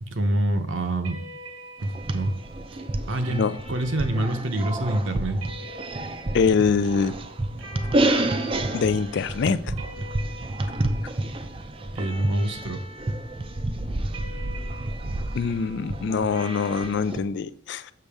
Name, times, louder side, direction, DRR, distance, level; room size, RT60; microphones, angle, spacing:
voice 1, 0.0-1.2 1.8-2.4 3.1-5.4 12.0-12.8, right 1 dB, 60° right, 7 dB, 0.8 m, -26 dB
sound 1, 1.0-16.9, right 1 dB, 90° right, 1.6 m, -44 dB
sound 2, 1.8-17.2, right 1 dB, 25° right, 0.5 m, -30 dB
voice 2, 6.3-7.1 8.7-9.6 15.3-17.9, left 5 dB, 55° left, 15 dB, 0.3 m, -24 dB
6.8 x 6.3 x 3.5 m, 0.67 s
head